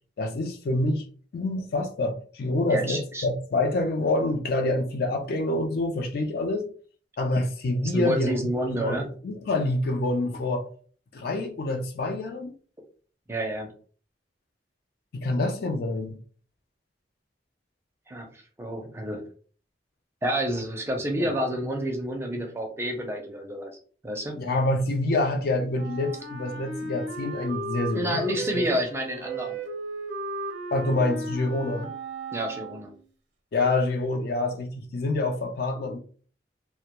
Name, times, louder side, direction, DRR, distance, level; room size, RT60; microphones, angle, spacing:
voice 1, 0.2-1.0 1.3-6.7 7.2-8.3 8.7-10.7 11.1-12.5 15.1-16.2 21.2-21.3 24.4-28.2 28.5-28.6 30.7-31.9 33.5-36.0, left 2 dB, 60° left, 0.4 m, -27 dB
voice 2, 2.7-3.3 7.9-9.1 13.3-13.7 18.1-19.2 20.2-23.8 24.0-24.4 27.9-29.6 31.1-31.3 32.3-32.9, equal, 15° right, 0.4 m, -29 dB
Wind instrument woodwind instrument, 25.7-33.1, right 2 dB, 70° right, 0.6 m, -35 dB
2.2 x 2.1 x 2.9 m
head